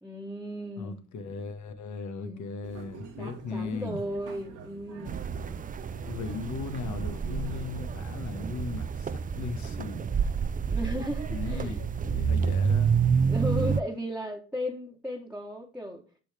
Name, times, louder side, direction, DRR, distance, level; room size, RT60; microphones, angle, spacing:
voice 1, 0.0-1.0 2.2-2.4 3.2-5.2 10.7-11.8 12.1-12.4 13.3-16.0, equal, 5° right, 1.3 m, -35 dB
voice 2, 0.8-4.0 6.0-10.2 11.3-13.0, left 4 dB, 70° left, 1.4 m, -37 dB
sound 1, 2.6-7.8, right 5 dB, 80° right, 1.6 m, -46 dB
sound 2, 5.1-13.8, right 6 dB, 30° right, 0.4 m, -29 dB
6.7 x 6.1 x 3.4 m
cardioid pair, 90°, 30 cm